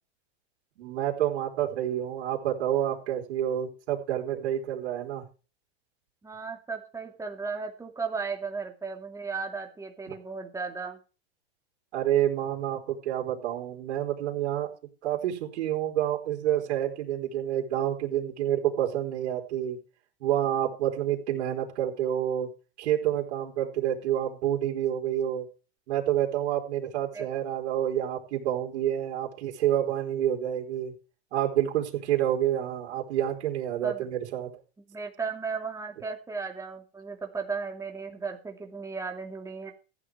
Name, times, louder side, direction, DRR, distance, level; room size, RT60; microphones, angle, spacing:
voice 1, 0.8-5.2 11.9-14.7 15.0-19.8 20.2-22.5 22.8-25.5 25.9-30.9 31.3-34.5, right 11 dB, 75° right, 0 dB, 4.1 m, -28 dB
voice 2, 6.2-11.0 27.1-27.3 33.8-34.1 34.8-39.7, right 4 dB, 10° right, 2 dB, 2.5 m, -35 dB
15.0 x 8.7 x 4.9 m, 0.35 s
supercardioid pair, 135°, 33 cm